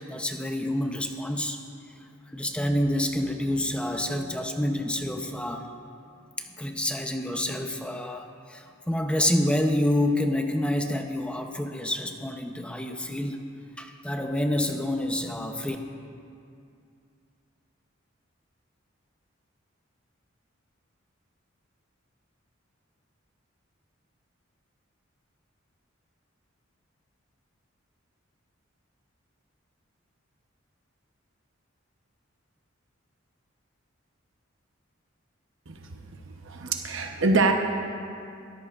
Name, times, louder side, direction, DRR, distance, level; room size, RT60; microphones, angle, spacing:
voice 1, 0.0-1.6 2.3-5.7 6.6-13.4 13.8-15.8, left 1 dB, 5° left, 4 dB, 0.7 m, -28 dB
voice 2, 36.4-37.5, right 3 dB, 70° right, 3 dB, 0.9 m, -24 dB
23.0 x 13.0 x 2.5 m, 2.4 s
head